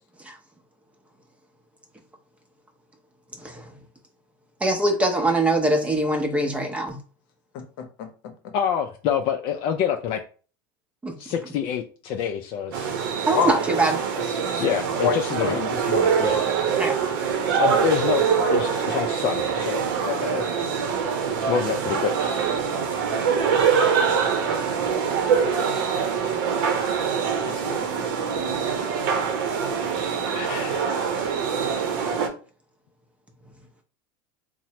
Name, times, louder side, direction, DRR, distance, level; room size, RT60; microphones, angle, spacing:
voice 1, 3.4-3.7 4.6-7.0 11.0-11.2 13.3-14.0 16.8-17.1, right 2 dB, 10° right, 0.6 m, -23 dB
voice 2, 7.5-8.5 13.3-13.6 14.4-14.6 15.0-15.7 16.3-16.4 27.4-27.9, left 6 dB, 70° left, 0.7 m, -28 dB
voice 3, 8.5-10.2 11.2-12.9 14.6-16.5 17.5-18.2 18.5-20.4 21.5-22.5 30.3-30.9, left 8 dB, 50° left, 0.4 m, -27 dB
sound 1, 12.7-32.3, right 6 dB, 75° right, 0.7 m, -24 dB
3.0 x 2.0 x 2.8 m
supercardioid pair, 110°, 12 cm